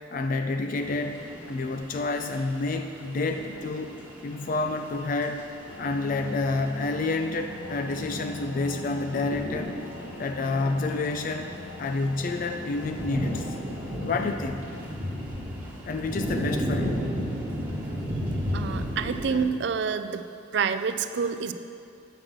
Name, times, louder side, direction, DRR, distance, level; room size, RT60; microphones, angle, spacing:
voice 1, 0.1-3.9 4.2-5.4 5.8-9.8 10.2-11.5 11.8-13.5 14.0-14.7 15.9-17.1 17.9-18.0 19.3-19.4, left 3 dB, 40° left, 6 dB, 0.3 m, -29 dB
sound 1, 0.8-19.5, equal, 10° right, 1.3 m, -35 dB
sound 2, 5.7-14.6, left 1 dB, 75° left, 0.6 m, -41 dB
voice 2, 18.5-20.2 20.5-21.5, right 6 dB, 60° right, 10 dB, 0.4 m, -27 dB
7.4 x 6.1 x 6.4 m, 2.6 s
head